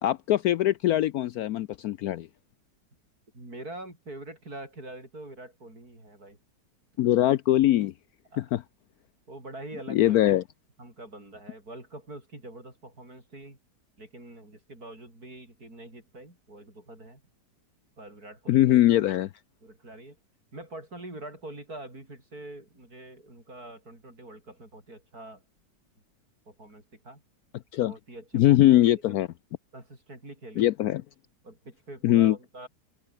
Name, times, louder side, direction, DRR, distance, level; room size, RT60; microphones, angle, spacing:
voice 1, 0.0-2.3 7.0-7.9 8.4-8.6 9.9-10.4 18.5-19.3 27.7-27.9 28.3-29.3 30.6-31.0 32.0-32.4, left 14 dB, 70° left, 1.0 m, -22 dB
voice 2, 3.3-6.4 7.0-7.1 8.3-8.4 9.3-10.2 10.8-13.6 14.0-17.2 18.0-18.8 19.6-20.2 20.5-25.4 26.5-27.2 27.9-28.8 29.1-29.2 29.7-30.7 31.4-32.7, right 1 dB, 55° right, 8.2 m, -44 dB
open air
omnidirectional pair, 1.9 m